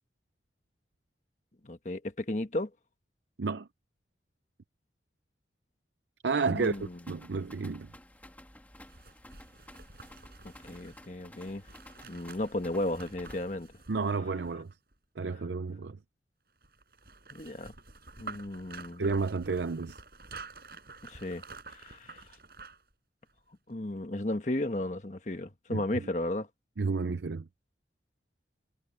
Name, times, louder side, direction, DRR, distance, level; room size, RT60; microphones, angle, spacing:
voice 1, 1.6-2.7 6.5-7.0 10.6-11.6 12.0-13.7 17.3-17.7 18.2-19.0 21.0-21.4 21.7-22.2 23.7-26.5, left 1 dB, 40° left, 1.4 m, -34 dB
voice 2, 6.2-7.9 13.9-14.7 15.2-16.0 19.0-20.0 25.7-25.8 26.8-27.4, right 4 dB, 80° right, 0.6 m, -31 dB
sound 1, 6.5-13.6, left 1 dB, 10° left, 2.4 m, -53 dB
sound 2, 8.8-14.9 16.6-22.9 23.3-23.4, right 3 dB, 55° right, 7.9 m, -49 dB
head